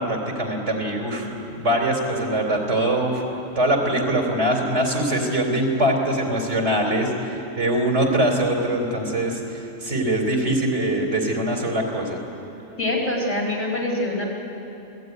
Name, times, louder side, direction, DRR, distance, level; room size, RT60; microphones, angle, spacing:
voice 1, 0.0-3.3 3.6-12.2, right 1 dB, 60° right, 2 dB, 3.9 m, -23 dB
voice 2, 12.8-14.3, left 1 dB, 75° left, -2 dB, 5.1 m, -24 dB
27.5 x 17.5 x 9.6 m, 2.9 s
omnidirectional pair, 1.3 m